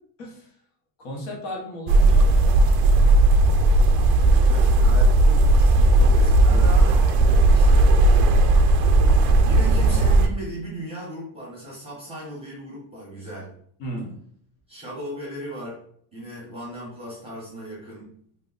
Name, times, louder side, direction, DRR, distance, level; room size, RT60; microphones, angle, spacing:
voice 1, 1.0-2.7 6.0-6.1 6.5-6.7 13.8-14.2, equal, 55° left, 0 dB, 1.0 m, -35 dB
sound 1, 1.9-10.3, right 2 dB, 60° right, 0.5 m, -16 dB
voice 2, 4.5-7.9 9.4-13.5 14.7-15.8 16.1-18.1, right 1 dB, 10° right, -6 dB, 0.7 m, -37 dB
2.8 x 2.1 x 3.7 m, 0.64 s
cardioid pair, 170°, 49 cm